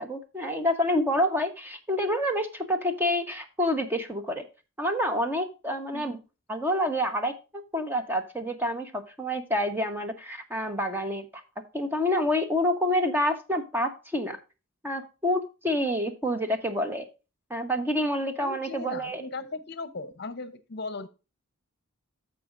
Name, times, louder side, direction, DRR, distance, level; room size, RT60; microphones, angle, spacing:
voice 1, 0.0-4.4 4.8-6.2 6.5-11.4 11.7-14.4 14.8-17.1 17.5-19.2, left 1 dB, 10° right, 1.0 m, -28 dB
voice 2, 18.4-21.1, left 3 dB, 50° left, 0.8 m, -37 dB
14.5 x 5.0 x 2.5 m
head